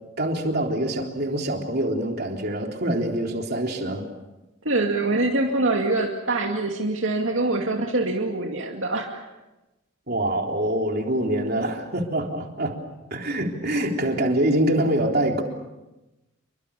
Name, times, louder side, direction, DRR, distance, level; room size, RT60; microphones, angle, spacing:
voice 1, 0.2-4.1 10.1-12.8 13.1-15.4, right 1 dB, 50° right, 2 dB, 3.6 m, -25 dB
voice 2, 4.7-9.2, right 2 dB, 70° right, 1 dB, 2.3 m, -24 dB
28.0 x 24.0 x 7.1 m, 1.0 s
head